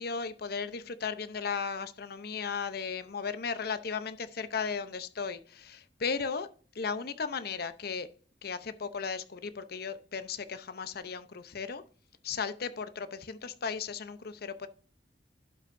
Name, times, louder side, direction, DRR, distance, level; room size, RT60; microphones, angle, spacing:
voice 1, 0.0-6.5 6.7-8.1 8.4-11.8 12.2-14.7, left 5 dB, 60° left, 0.7 m, -36 dB
11.5 x 5.9 x 2.6 m
head